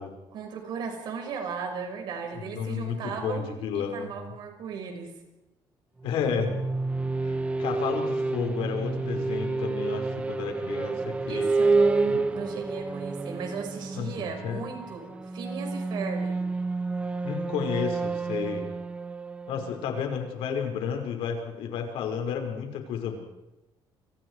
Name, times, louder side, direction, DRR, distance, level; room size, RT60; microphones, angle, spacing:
voice 1, 0.3-3.5 3.7-5.1 11.3-16.4, right 6 dB, 55° right, 4 dB, 5.8 m, -36 dB
voice 2, 2.3-4.1 6.0-6.5 7.2-11.5 12.1-12.2 13.9-14.6 17.2-18.7 19.5-23.2, left 7 dB, 90° left, 3 dB, 5.6 m, -32 dB
sound 1, 6.0-20.7, right 3 dB, 15° right, 0.9 m, -29 dB
29.5 x 25.5 x 4.9 m, 0.98 s
cardioid pair, 180°, 9 cm